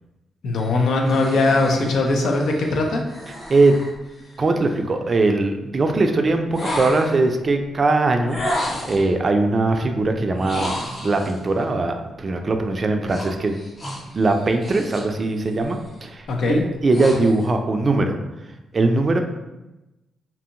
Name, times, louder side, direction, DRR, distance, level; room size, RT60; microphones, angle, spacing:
voice 1, 0.4-3.0 16.3-16.6, left 2 dB, 70° left, 2 dB, 0.5 m, -20 dB
sound 1, 0.6-4.8 6.5-7.3 8.3-9.1 10.3-11.4 13.1-15.2 15.5-15.9 16.4-17.5, left 1 dB, 55° left, 1.1 m, -32 dB
voice 2, 4.4-8.4 8.9-13.6 14.1-18.2 18.7-19.2, right 2 dB, 45° right, 5 dB, 0.3 m, -20 dB
2.7 x 2.6 x 2.5 m, 1.0 s
supercardioid pair, 50°, 0 cm